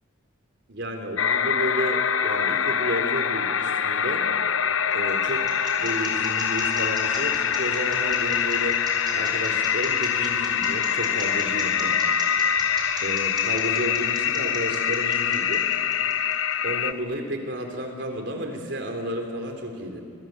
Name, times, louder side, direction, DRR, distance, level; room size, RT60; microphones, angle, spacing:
voice 1, 0.7-4.3 4.9-5.5 5.8-8.8 9.1-12.0 13.0-15.7 16.6-20.0, equal, 60° right, 4 dB, 4.0 m, -32 dB
sound 1, 1.2-16.9, left 8 dB, 85° left, 1.0 m, -24 dB
sound 2, 4.5-16.5, right 3 dB, 20° right, 6.7 m, -40 dB
27.5 x 26.5 x 8.1 m, 2.3 s
head